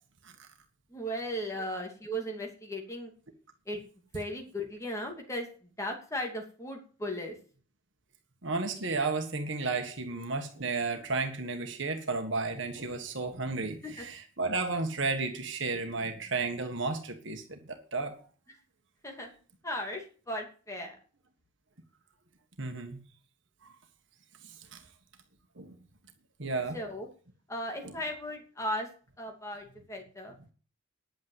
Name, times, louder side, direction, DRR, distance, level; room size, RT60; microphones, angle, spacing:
voice 1, 0.9-3.1 3.7-3.8 4.1-5.5 5.8-7.4 13.8-14.0 19.0-19.3 19.6-21.0 26.7-27.1 27.5-28.9 29.2-30.3, equal, 15° left, 2 dB, 2.6 m, -36 dB
voice 2, 8.4-18.1 22.6-23.0 24.4-24.8 25.6-25.8 26.4-26.8 27.8-27.9, right 3 dB, 60° right, 4 dB, 1.7 m, -33 dB
10.5 x 8.7 x 8.1 m, 0.40 s
head